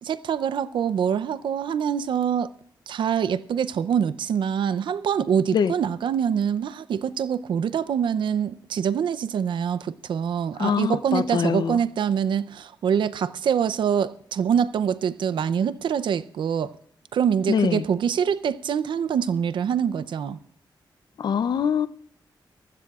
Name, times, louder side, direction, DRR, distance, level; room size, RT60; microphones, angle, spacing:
voice 1, 0.0-2.5 2.9-16.8 17.1-20.4, right 8 dB, 75° right, 0.6 m, -25 dB
voice 2, 10.6-11.8 17.5-17.8 21.2-21.9, left 7 dB, 60° left, 0.6 m, -23 dB
24.5 x 15.5 x 2.4 m
wide cardioid pair, 140°, 8 cm